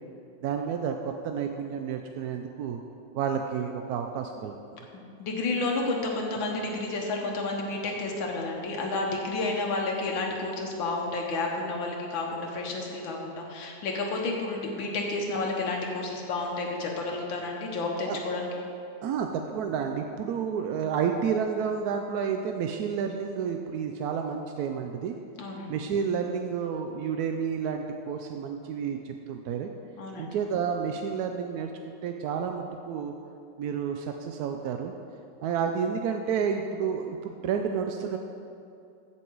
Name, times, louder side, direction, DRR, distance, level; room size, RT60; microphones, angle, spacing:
voice 1, 0.4-2.8 3.1-4.5 18.1-18.2 19.0-25.2 25.7-29.7 30.2-33.1 33.6-34.9 35.4-38.2, right 7 dB, 70° right, 4 dB, 0.9 m, -30 dB
voice 2, 4.9-18.5 25.4-25.7 30.0-30.3, left 3 dB, 85° left, -1 dB, 1.9 m, -31 dB
15.5 x 6.1 x 4.6 m, 2.6 s
omnidirectional pair, 2.1 m